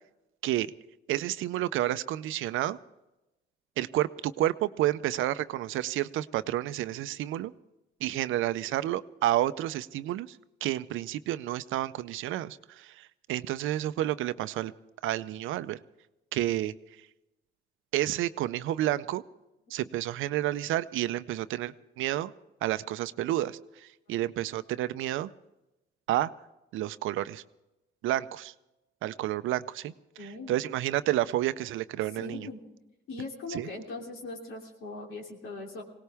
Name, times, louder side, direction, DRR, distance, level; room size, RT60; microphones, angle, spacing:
voice 1, 1.1-2.8 3.8-7.5 8.0-14.7 15.0-15.8 16.3-16.7 17.9-19.2 19.7-22.3 22.6-25.3 26.1-26.3 26.7-27.4 28.0-28.5 29.0-29.9 30.5-32.5 33.5-33.7, right 14 dB, 85° right, 14 dB, 0.6 m, -30 dB
voice 2, 30.2-30.6 32.2-32.6 33.1-35.8, left 3 dB, 85° left, 1 dB, 3.1 m, -40 dB
21.0 x 18.0 x 3.5 m, 0.98 s
cardioid pair, 90°, 20 cm